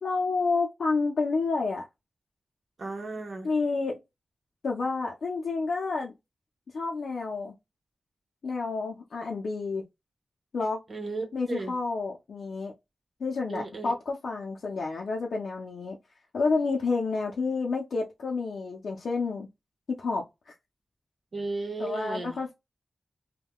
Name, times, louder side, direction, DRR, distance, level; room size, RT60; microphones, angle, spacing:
voice 1, 0.0-1.9 3.4-4.0 4.6-6.1 6.7-7.5 8.4-9.8 10.5-10.8 11.3-12.7 13.2-16.0 16.3-19.5 19.9-20.5 21.8-22.5, left 4 dB, 85° left, 0.5 m, -29 dB
voice 2, 2.8-3.5 10.9-11.7 13.5-13.9 21.3-22.4, right 3 dB, 55° right, 1.0 m, -35 dB
3.5 x 2.2 x 2.2 m
wide cardioid pair, 75°, 0 cm